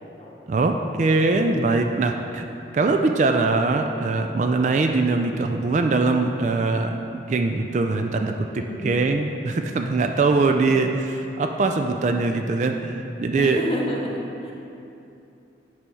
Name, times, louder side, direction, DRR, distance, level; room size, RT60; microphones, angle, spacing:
voice 1, 0.5-2.5 2.7-10.9 11.4-13.6, right 3 dB, 40° right, 4 dB, 0.3 m, -22 dB
voice 2, 8.5-9.0 10.7-10.8 13.4-14.1 14.4-14.5, left 1 dB, 30° left, -2 dB, 0.9 m, -29 dB
9.7 x 3.5 x 5.3 m, 2.8 s
head